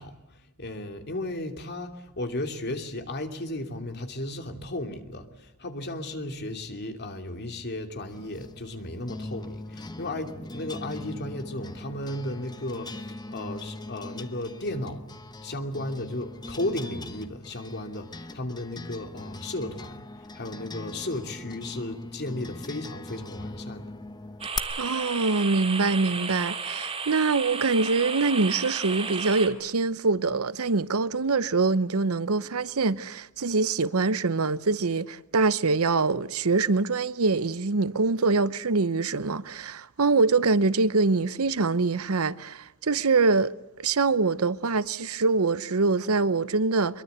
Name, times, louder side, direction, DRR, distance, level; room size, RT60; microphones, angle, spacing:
voice 1, 0.0-15.0 15.4-20.1 20.3-23.9, left 1 dB, 50° left, 2.9 m, -35 dB
sound 1, 8.1-24.6, left 2 dB, 20° left, 1.0 m, -40 dB
sound 2, 24.4-29.5, right 5 dB, 25° right, 2.9 m, -33 dB
voice 2, 24.8-47.0, right 3 dB, 80° right, 0.8 m, -24 dB
24.0 x 22.5 x 8.1 m
head